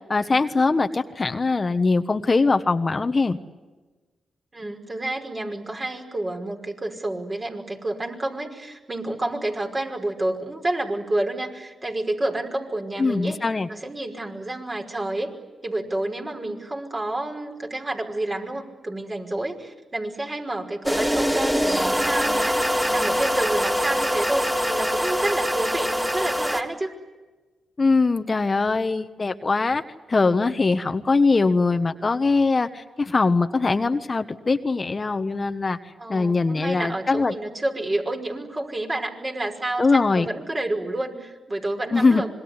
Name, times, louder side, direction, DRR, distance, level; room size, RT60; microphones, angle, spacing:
voice 1, 0.1-3.4 13.0-13.7 27.8-29.8 30.1-35.8 36.1-37.3 39.8-40.3 41.9-42.2, left 3 dB, 40° left, 9 dB, 1.3 m, -21 dB
voice 2, 4.5-13.4 13.7-15.4 15.6-26.9 36.0-42.3, right 1 dB, 35° right, 3 dB, 5.4 m, -29 dB
sound 1, 20.8-26.6, equal, 10° right, 3.2 m, -23 dB
26.0 x 22.0 x 9.8 m, 1.2 s
supercardioid pair, 50°, 0 cm